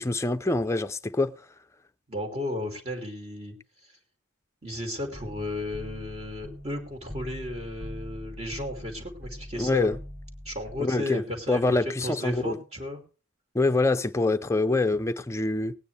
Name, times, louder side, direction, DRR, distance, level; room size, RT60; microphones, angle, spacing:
voice 1, 0.0-1.4 9.6-10.0 10.8-11.2 11.5-12.6 13.5-15.8, left 2 dB, 15° left, 0.6 m, -25 dB
voice 2, 2.1-3.5 4.6-9.9 10.4-13.0, left 1 dB, 30° right, 2.6 m, -34 dB
sound 1, 5.1-10.8, equal, 5° right, 1.7 m, -42 dB
18.5 x 9.4 x 3.3 m
head